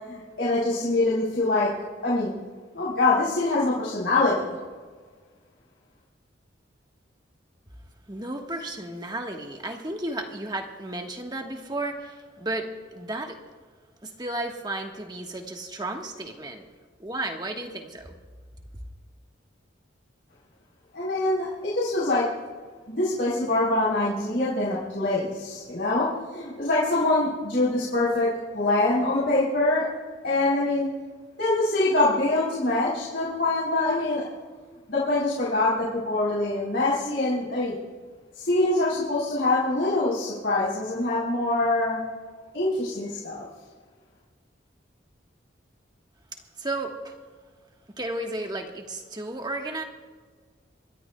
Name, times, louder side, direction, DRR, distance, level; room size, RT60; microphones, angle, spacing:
voice 1, 0.1-1.7 2.0-2.3 2.7-4.6 20.9-22.2 22.9-28.3 28.5-29.8 30.2-30.9 31.4-34.2 34.9-37.8 38.3-42.0 42.5-43.4, left 2 dB, 70° left, -9 dB, 4.0 m, -24 dB
voice 2, 8.1-13.4 14.0-16.6 17.0-18.2 18.7-18.8 46.6-47.1 48.0-49.8, right 2 dB, 20° right, 3 dB, 1.3 m, -33 dB
27.0 x 13.0 x 2.3 m, 1.5 s
head